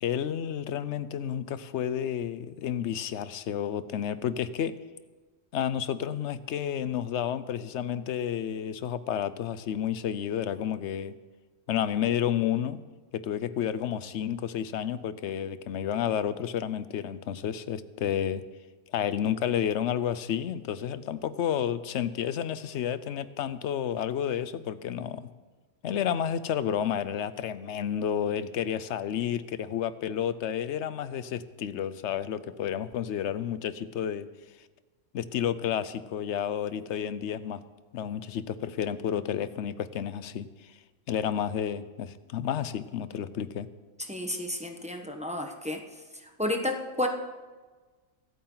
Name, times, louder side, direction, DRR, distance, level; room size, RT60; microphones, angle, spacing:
voice 1, 0.0-4.7 5.5-11.1 11.7-12.8 13.1-18.4 18.9-25.3 25.8-34.3 35.1-37.6 37.9-40.7 41.1-43.7, left 9 dB, 65° left, 14 dB, 0.9 m, -31 dB
voice 2, 44.1-45.8 46.2-47.1, left 1 dB, 5° right, 3 dB, 1.1 m, -31 dB
24.5 x 8.7 x 3.9 m, 1.3 s
omnidirectional pair, 1.3 m